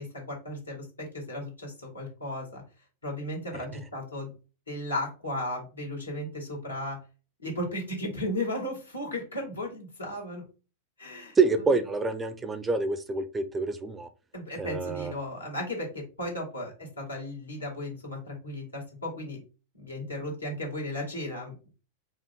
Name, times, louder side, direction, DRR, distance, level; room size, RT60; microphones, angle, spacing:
voice 1, 0.0-2.6 3.0-4.3 4.7-7.0 7.4-10.4 11.0-11.4 14.3-19.4 19.8-21.5, left 1 dB, 80° left, -1 dB, 2.1 m, -35 dB
voice 2, 11.4-14.1 14.6-15.1, right 4 dB, 15° right, 11 dB, 0.6 m, -27 dB
5.0 x 2.5 x 3.7 m, 0.33 s
figure-of-eight pair, 90°, 0 cm